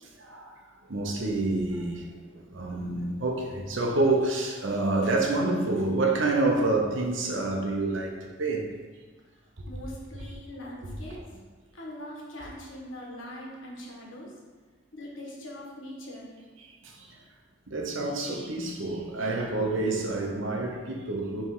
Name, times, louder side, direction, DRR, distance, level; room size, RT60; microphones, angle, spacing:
voice 1, 0.2-0.6 0.9-2.1 2.3-8.7 11.1-11.2 16.6-17.2 17.7-21.5, right 2 dB, 80° right, 1 dB, 0.9 m, -28 dB
voice 2, 9.7-11.2 11.7-14.3 14.9-16.3, left 1 dB, 85° left, -3 dB, 1.4 m, -42 dB
5.7 x 3.4 x 4.8 m, 1.4 s
head